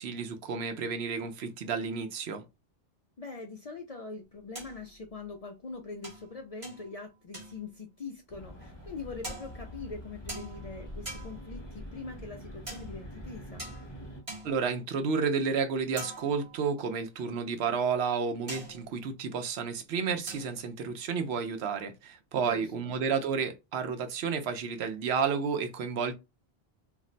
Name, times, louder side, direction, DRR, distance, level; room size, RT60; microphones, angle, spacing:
voice 1, 0.0-2.4 14.4-26.1, right 5 dB, 80° right, 0.9 m, -31 dB
voice 2, 3.2-13.6 22.3-23.0, left 4 dB, 55° left, 0.4 m, -43 dB
sound 1, 4.6-5.0 6.0-7.0 7.3-7.9 8.6-8.8 9.2-9.9 10.3-11.7 12.7-13.1 13.6-14.8 16.0-16.8 18.5-19.1 20.3-20.7, right 1 dB, 35° right, 1.1 m, -44 dB
sound 2, 8.3-14.2, equal, 30° left, 0.8 m, -44 dB
2.5 x 2.1 x 3.7 m
omnidirectional pair, 1.1 m